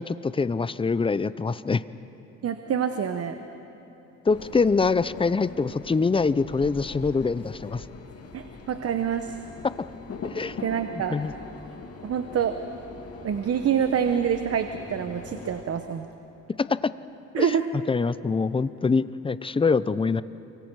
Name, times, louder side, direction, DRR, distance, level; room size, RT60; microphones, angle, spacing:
voice 1, 0.0-1.8 4.3-7.8 10.3-10.6 11.1-11.3 16.6-16.9 17.4-17.5 17.9-20.2, left 4 dB, 20° left, 16 dB, 0.5 m, -24 dB
voice 2, 2.4-3.4 8.3-9.4 10.6-11.2 12.0-12.5 13.2-16.1 17.3-17.7, right 8 dB, 50° right, 8 dB, 1.0 m, -26 dB
sound 1, 4.3-15.6, left 4 dB, 50° left, 2.3 m, -42 dB
28.5 x 24.0 x 4.7 m, 3.0 s
cardioid pair, 90°, 30 cm